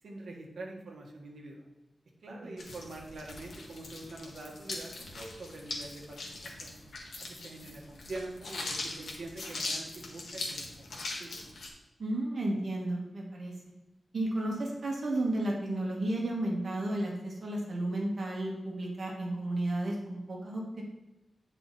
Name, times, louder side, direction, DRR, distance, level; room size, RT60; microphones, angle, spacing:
voice 1, 0.0-1.7 2.2-6.2 6.4-6.7 7.2-10.7 10.9-11.4, right 2 dB, 80° right, 0 dB, 1.7 m, -44 dB
sound 1, 2.6-11.7, left 2 dB, 75° left, 1.6 m, -41 dB
voice 2, 12.0-13.5 14.1-20.8, right 1 dB, 55° right, -1 dB, 1.9 m, -33 dB
9.4 x 5.0 x 4.2 m, 1.0 s
wide cardioid pair, 150°, 0 cm